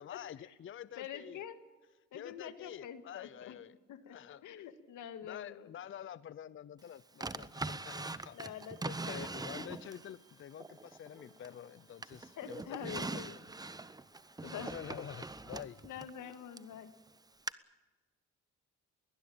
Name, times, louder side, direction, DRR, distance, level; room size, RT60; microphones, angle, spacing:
voice 1, 0.0-1.4 2.1-3.8 4.1-4.6 5.2-8.6 8.9-13.4 14.4-15.8, left 9 dB, 40° left, 17 dB, 0.6 m, -48 dB
voice 2, 1.0-1.6 2.1-3.6 3.9-4.2 4.4-5.7 8.3-9.7 12.4-13.1 14.4-14.7 15.8-16.9, left 9 dB, 80° left, 9 dB, 1.9 m, -46 dB
Drawer open or close, 7.2-10.1 10.6-11.7 12.0-16.7 17.5-17.6, right 3 dB, 15° right, 0.8 m, -42 dB
sound 1, 7.8-13.1, right 5 dB, 70° right, 6.2 m, -73 dB
sound 2, 11.2-16.9, left 1 dB, 5° left, 5.3 m, -68 dB
21.0 x 19.5 x 8.8 m, 1.3 s
cardioid pair, 90°, 30 cm